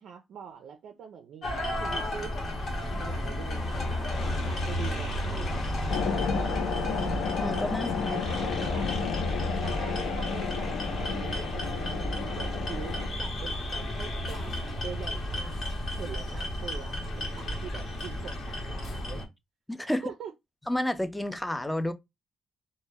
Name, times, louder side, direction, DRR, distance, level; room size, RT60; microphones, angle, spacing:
voice 1, 0.0-7.2 8.1-8.9 9.6-19.2 19.9-20.3, right 7 dB, 70° right, 0.3 m, -44 dB
sound 1, 1.4-19.2, left 1 dB, 60° left, 0.9 m, -32 dB
sound 2, 3.5-8.9, left 2 dB, 25° left, 0.8 m, -45 dB
sound 3, 5.9-13.1, left 6 dB, 80° left, 0.4 m, -32 dB
voice 2, 7.4-8.2 19.7-20.0 20.7-21.9, left 1 dB, 10° left, 0.4 m, -30 dB
2.1 x 2.0 x 3.2 m
cardioid pair, 90°, 0 cm